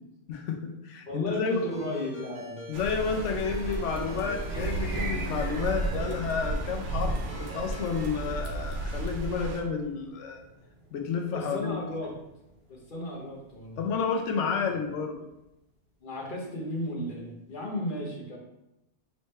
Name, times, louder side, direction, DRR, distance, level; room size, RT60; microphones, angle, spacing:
voice 1, 0.3-1.6 2.7-10.4 10.9-11.8 13.8-15.1, left 5 dB, 80° left, 3 dB, 1.0 m, -31 dB
voice 2, 1.1-2.6 11.3-12.1 12.7-13.9 16.0-18.4, left 1 dB, 50° left, -2 dB, 1.0 m, -34 dB
Ringtone, 1.5-8.4, equal, 5° right, 0.7 m, -45 dB
sound 1, 2.7-9.6, right 2 dB, 90° right, 1.0 m, -33 dB
sound 2, 4.5-14.7, right 2 dB, 40° right, 1.4 m, -44 dB
3.4 x 3.2 x 4.2 m, 0.90 s
omnidirectional pair, 1.2 m